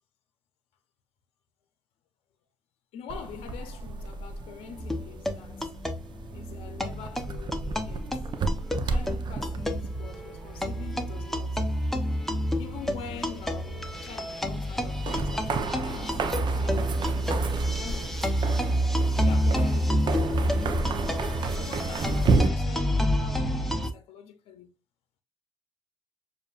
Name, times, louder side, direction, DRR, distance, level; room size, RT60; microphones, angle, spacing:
voice 1, 2.9-5.7 6.3-8.3 8.8-11.6 12.6-17.4 17.8-18.5 19.1-20.3 20.6-21.1 21.5-24.7, left 7 dB, 80° left, 0.7 m, -44 dB
sound 1, 3.1-22.5, right 3 dB, 50° right, 0.7 m, -33 dB
sound 2, 4.8-23.9, equal, ahead, 0.9 m, -29 dB
6.7 x 2.6 x 2.4 m
supercardioid pair, 75°, 10 cm